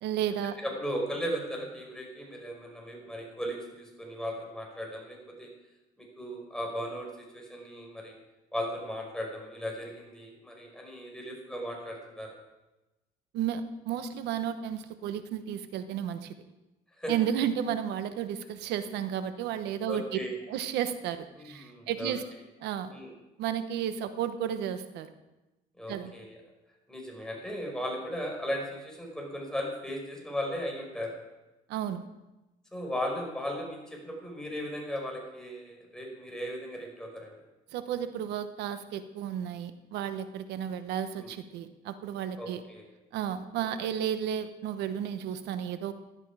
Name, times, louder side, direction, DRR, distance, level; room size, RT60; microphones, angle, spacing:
voice 1, 0.0-0.6 13.3-16.3 17.1-20.2 20.5-22.2 22.6-22.9 23.4-25.1 25.9-26.1 31.7-32.1 37.7-42.6 43.1-45.9, right 9 dB, 85° right, 10 dB, 1.1 m, -33 dB
voice 2, 0.6-5.5 6.0-8.2 8.5-12.3 17.0-17.1 19.8-20.3 21.4-22.1 22.9-23.1 25.8-26.4 26.9-31.1 32.7-37.4 41.1-41.3 42.4-42.9, equal, 5° left, -1 dB, 5.2 m, -36 dB
16.0 x 11.0 x 4.9 m, 1.0 s
cardioid pair, 110°, 17 cm